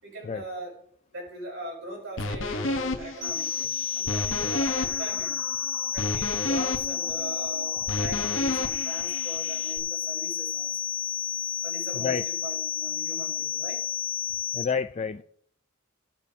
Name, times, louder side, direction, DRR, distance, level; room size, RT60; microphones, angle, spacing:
voice 1, 0.0-0.7 1.1-5.4 5.9-10.9 11.6-13.8, right 2 dB, 60° right, -2 dB, 4.9 m, -40 dB
sound 1, 2.2-9.8, left 2 dB, 65° left, 1.0 m, -32 dB
sound 2, 3.2-14.6, left 8 dB, 35° right, 2.5 m, -31 dB
voice 2, 14.5-15.2, left 6 dB, 30° left, 10 dB, 0.3 m, -29 dB
19.5 x 7.0 x 2.8 m, 0.68 s
head